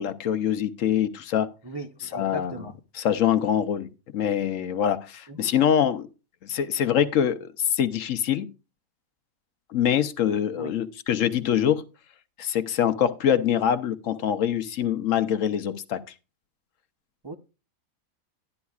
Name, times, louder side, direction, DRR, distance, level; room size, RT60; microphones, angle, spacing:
voice 1, 0.0-1.5 2.1-2.5 2.9-6.1 6.4-8.5 9.7-11.8 12.4-16.0, left 9 dB, 65° left, 1.0 m, -24 dB
voice 2, 1.6-2.7 5.3-5.5 10.6-10.7 17.2-17.3, right 1 dB, 35° right, 0.4 m, -37 dB
12.5 x 10.5 x 2.4 m
omnidirectional pair, 1.5 m